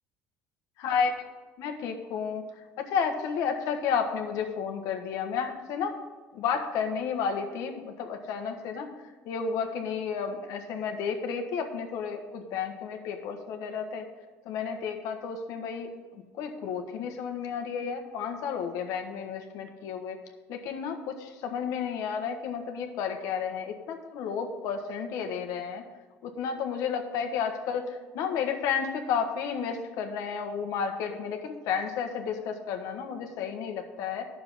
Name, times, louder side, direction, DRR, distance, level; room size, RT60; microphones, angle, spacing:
voice 1, 0.8-1.1 1.6-2.4 2.8-5.9 6.3-8.9 9.2-14.1 14.4-20.2 20.5-25.8 26.2-34.2, left 6 dB, 70° left, 5 dB, 1.3 m, -32 dB
10.0 x 6.7 x 5.5 m, 1.3 s
cardioid pair, 130°, 6 cm